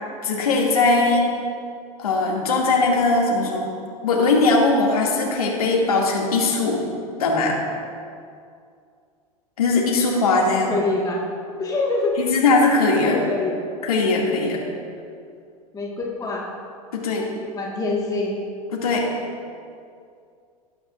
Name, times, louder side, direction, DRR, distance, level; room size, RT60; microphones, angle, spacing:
voice 1, 0.2-1.3 2.0-3.7 4.0-6.8 7.2-7.6 9.6-10.7 12.2-13.2 13.8-14.6 16.9-17.3 18.7-19.1, left 3 dB, 70° left, -2 dB, 2.4 m, -20 dB
voice 2, 10.7-11.2 11.6-12.1 13.0-13.5 15.7-16.5 17.5-18.4, left 3 dB, 20° left, -3 dB, 1.6 m, -25 dB
19.0 x 8.6 x 2.5 m, 2.3 s
figure-of-eight pair, 85°, 19 cm